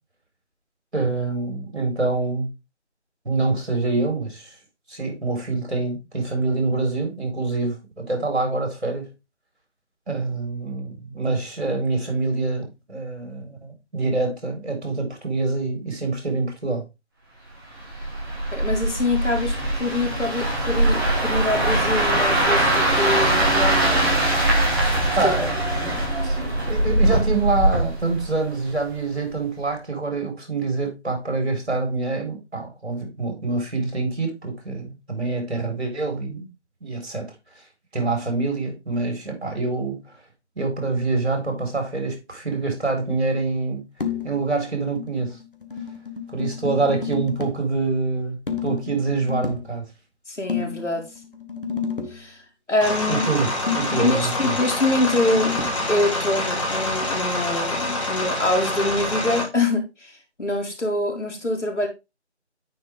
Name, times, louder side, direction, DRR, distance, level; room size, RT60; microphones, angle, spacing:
voice 1, 0.9-2.5 3.2-4.5 4.9-9.1 10.1-16.8 25.2-25.5 26.2-36.5 36.8-37.3 37.9-40.0 40.6-43.8 44.2-45.4 46.3-49.8 53.1-53.5 53.8-54.5, right 3 dB, 65° right, 4.4 m, -26 dB
sound 1, 17.8-28.9 29.3-29.6, right 1 dB, 20° right, 2.2 m, -22 dB
voice 2, 18.5-24.3 25.2-25.3 25.8-26.1 50.3-51.0 52.1-52.4 52.7-53.3 54.0-55.6 55.9-60.1 60.4-61.9, left 2 dB, 85° left, 3.4 m, -25 dB
sound 2, 44.0-44.5 44.8-47.7 48.5-49.7 50.5-52.2 53.7-55.9, left 6 dB, 50° left, 1.3 m, -31 dB
sound 3, 52.8-59.4, left 1 dB, 25° left, 2.2 m, -26 dB
9.5 x 4.9 x 3.5 m
figure-of-eight pair, 175°, 35 cm